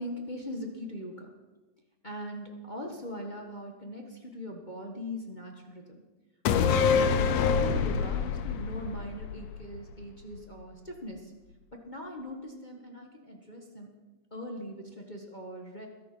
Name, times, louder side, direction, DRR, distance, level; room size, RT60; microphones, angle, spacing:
voice 1, 0.0-1.3 2.0-6.0 6.5-7.1 7.5-11.3 11.7-13.9 14.3-15.9, left 1 dB, 50° left, 1 dB, 0.5 m, -40 dB
sound 1, 6.5-10.0 10.4-10.5, left 6 dB, 70° left, 1.8 m, -26 dB
21.0 x 10.5 x 6.1 m, 1.2 s
omnidirectional pair, 3.7 m